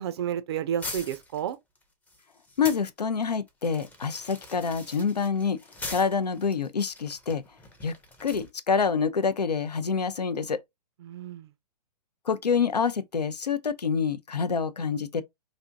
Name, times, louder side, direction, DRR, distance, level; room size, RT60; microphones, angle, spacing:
voice 1, 0.0-1.6 11.0-11.5, right 9 dB, 40° right, 0.4 m, -31 dB
sound 1, 0.8-2.9 3.3-8.5, left 2 dB, 5° left, 0.6 m, -42 dB
voice 2, 2.6-5.6 5.9-7.4 7.8-10.6 12.3-15.2, left 5 dB, 80° left, 0.5 m, -27 dB
4.2 x 2.6 x 2.4 m
figure-of-eight pair, 115°, 21 cm